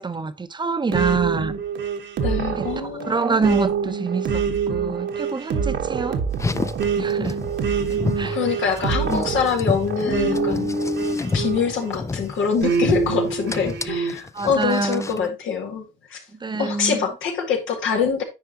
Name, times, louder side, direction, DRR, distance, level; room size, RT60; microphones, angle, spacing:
voice 1, 0.0-1.5 2.6-2.7 3.1-4.4 4.7-6.2 7.0-7.4 7.9-8.4 14.3-15.1 16.4-17.0, right 4 dB, 20° right, 0.7 m, -25 dB
sound 1, 0.9-12.0 12.6-14.2, right 6 dB, 70° right, 1.2 m, -26 dB
voice 2, 2.2-3.6 8.2-10.7 11.3-16.2 16.6-18.2, left 6 dB, 80° left, 1.9 m, -24 dB
Car, 6.3-15.3, left 3 dB, 15° left, 0.4 m, -29 dB
9.4 x 4.8 x 2.9 m
cardioid pair, 90°, 20 cm